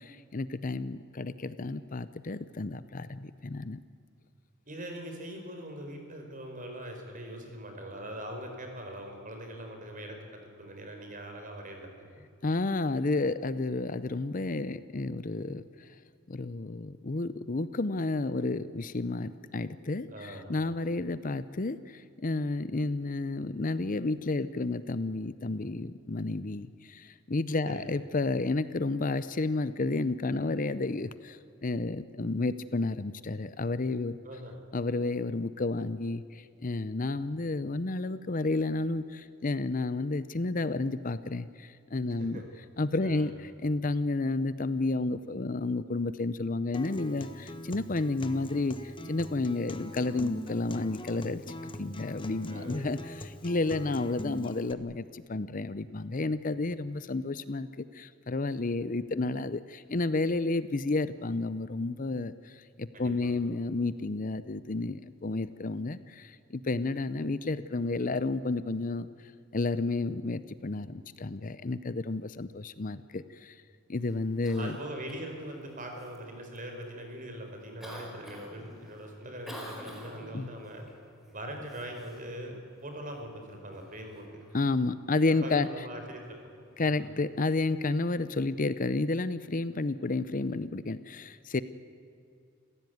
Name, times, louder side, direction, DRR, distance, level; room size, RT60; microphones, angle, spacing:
voice 1, 0.0-3.8 12.4-16.0 16.3-34.2 34.7-42.4 42.8-51.4 51.8-69.1 69.5-73.6 73.9-74.8 80.3-80.5 84.5-85.7 86.8-91.6, left 3 dB, 40° left, 14 dB, 0.7 m, -31 dB
voice 2, 4.7-12.2 20.1-20.5 27.7-27.8 34.2-34.6 42.1-42.5 43.0-43.3 52.5-52.9 62.9-63.3 74.5-80.8 81.3-82.6 82.8-84.3 85.3-86.4 86.8-87.1, right 1 dB, 40° right, 4 dB, 4.8 m, -42 dB
Acoustic guitar, 46.7-54.7, left 1 dB, 25° left, 1.2 m, -42 dB
Cough, 74.0-88.4, equal, ahead, 4.7 m, -52 dB
28.0 x 15.5 x 9.5 m, 2.4 s
head